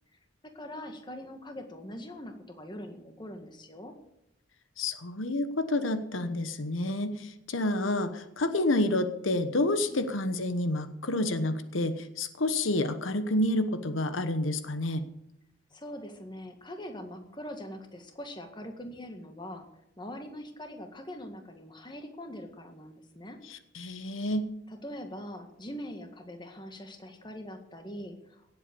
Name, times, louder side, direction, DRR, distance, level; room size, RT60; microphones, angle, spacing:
voice 1, 0.4-3.9 9.8-10.2 15.7-19.7 20.0-23.4 24.7-28.6, left 1 dB, 25° left, 5 dB, 1.8 m, -42 dB
voice 2, 4.8-15.0 23.5-24.5, left 1 dB, 85° left, 10 dB, 1.1 m, -29 dB
17.5 x 8.2 x 6.9 m, 0.80 s
head